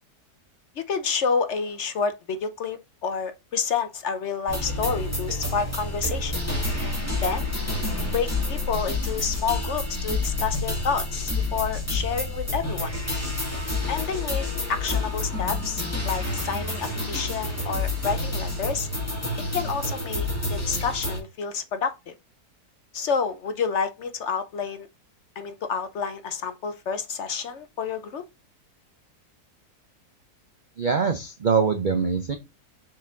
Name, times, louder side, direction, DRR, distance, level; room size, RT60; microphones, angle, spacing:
voice 1, 0.8-6.4 7.2-7.5 8.1-12.9 13.9-18.9 19.5-22.1 22.9-24.9 25.4-28.2, left 5 dB, 60° left, 0.8 m, -29 dB
sound 1, 4.5-21.2, left 2 dB, 10° left, 2.1 m, -29 dB
voice 2, 30.8-32.4, right 5 dB, 75° right, 0.4 m, -23 dB
6.5 x 4.1 x 3.6 m
omnidirectional pair, 1.8 m